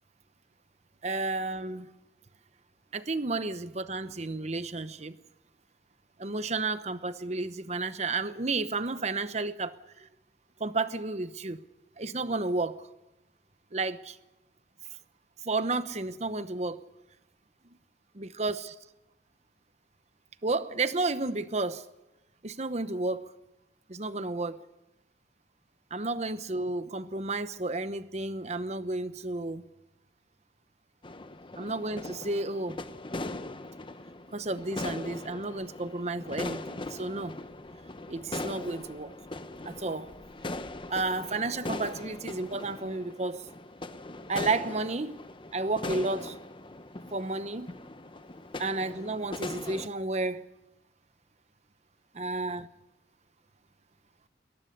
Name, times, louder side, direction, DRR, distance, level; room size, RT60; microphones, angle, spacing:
voice 1, 1.0-1.9 2.9-5.2 6.2-10.1 10.6-11.6 12.0-12.8 13.7-14.2 15.5-16.8 18.1-18.7 20.4-21.8 22.4-23.3 23.9-24.6 25.9-29.6 31.6-32.8 34.3-37.4 38.1-39.1 39.6-40.1 40.9-43.4 44.3-45.2 45.5-46.4 47.1-47.7 48.6-50.5 52.1-52.7, right 3 dB, 40° right, 0.9 m, -32 dB
sound 1, 31.0-49.9, left 2 dB, 30° left, 0.9 m, -40 dB
22.0 x 19.0 x 6.7 m
head